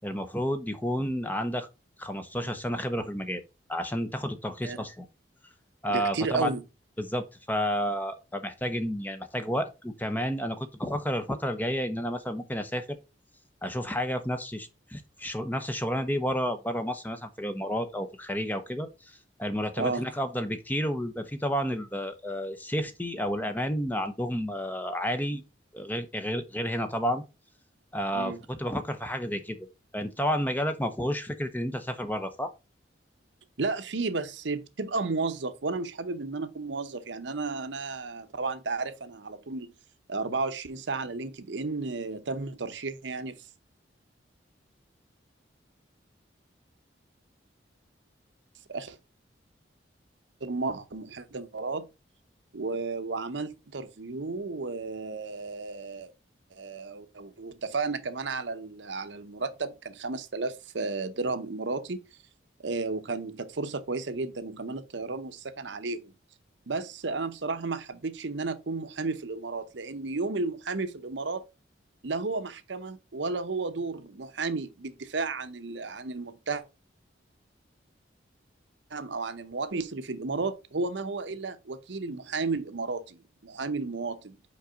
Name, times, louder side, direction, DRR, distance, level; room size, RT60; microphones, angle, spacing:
voice 1, 0.0-1.7 2.0-3.4 3.7-5.1 5.8-6.5 7.0-13.0 13.6-25.4 25.7-27.2 27.9-29.7 29.9-32.5, equal, 10° left, 0.7 m, -31 dB
voice 2, 5.9-6.6 19.8-20.1 28.1-28.4 33.6-39.7 40.1-43.4 48.7-49.0 50.4-51.9 52.5-56.1 56.5-62.0 62.6-66.1 66.7-71.4 72.0-76.6 78.9-84.4, right 3 dB, 75° right, 0.8 m, -33 dB
5.4 x 4.8 x 5.0 m
head